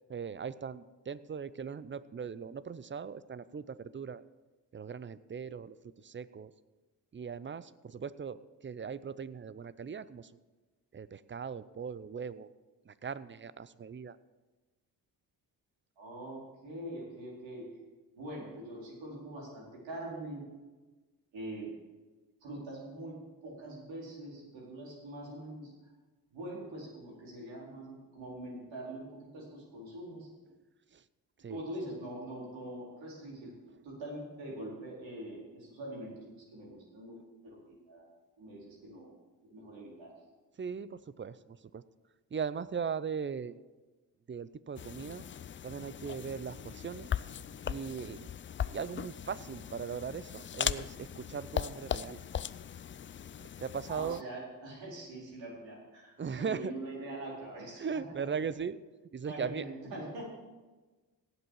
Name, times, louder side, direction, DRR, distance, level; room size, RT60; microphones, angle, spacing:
voice 1, 0.1-4.2 4.7-5.8 6.0-6.5 7.1-10.3 10.9-12.5 12.9-14.2 30.9-31.0 31.4-31.6 40.6-41.8 42.3-43.6 44.3-45.3 45.6-47.1 47.6-48.3 48.7-52.2 53.4-54.2 56.2-56.7 57.8-58.8 59.1-59.7, right 6 dB, 25° right, 17 dB, 0.6 m, -39 dB
voice 2, 16.0-17.7 18.2-20.4 21.3-21.7 22.4-25.7 26.3-30.3 31.5-33.5 33.8-37.2 37.4-38.1 38.4-39.1 39.4-40.1 53.9-57.8 59.2-60.3, right 1 dB, 75° right, -4 dB, 4.2 m, -43 dB
sound 1, 44.8-54.2, left 9 dB, 30° left, 0.4 m, -39 dB
17.0 x 7.9 x 4.8 m, 1.2 s
supercardioid pair, 55°, 45 cm